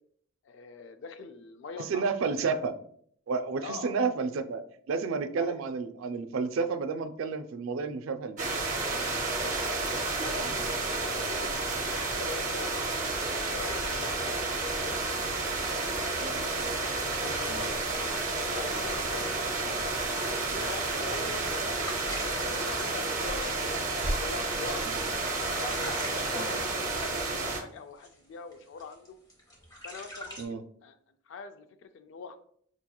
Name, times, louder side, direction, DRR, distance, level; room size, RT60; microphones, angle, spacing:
voice 1, 0.4-2.4 3.6-3.9 5.4-5.6 9.2-9.6 10.1-12.7 13.3-16.5 17.1-17.7 18.2-19.9 20.5-21.9 22.4-23.8 24.2-24.9 25.5-29.2 29.8-30.9 31.3-32.4, left 4 dB, 60° left, 8 dB, 0.3 m, -44 dB
voice 2, 1.8-2.8 3.3-8.5 10.4-10.6 17.5-17.7 19.2-19.3 24.9-25.0 26.4-26.5 30.4-30.6, right 4 dB, 80° right, 10 dB, 0.4 m, -31 dB
sound 1, 8.4-27.6, right 3 dB, 40° right, 0.6 m, -31 dB
Piano, 16.2-24.1, left 3 dB, 85° left, 0.7 m, -49 dB
sound 2, 21.8-27.5 28.0-28.2 28.5-30.5, equal, 20° left, 0.7 m, -43 dB
4.6 x 2.9 x 2.2 m, 0.62 s
head